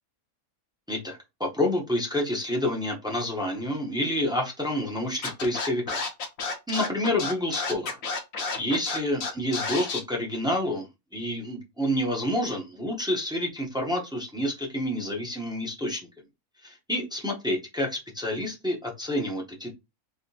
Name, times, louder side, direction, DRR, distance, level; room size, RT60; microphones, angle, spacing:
voice 1, 0.9-6.1 6.7-8.0 8.6-10.9 11.1-16.1 16.6-19.7, left 1 dB, 5° right, 0.6 m, -28 dB
Scratching (performance technique), 5.2-10.0, left 4 dB, 70° left, 1.3 m, -30 dB
3.5 x 2.8 x 2.7 m
omnidirectional pair, 1.5 m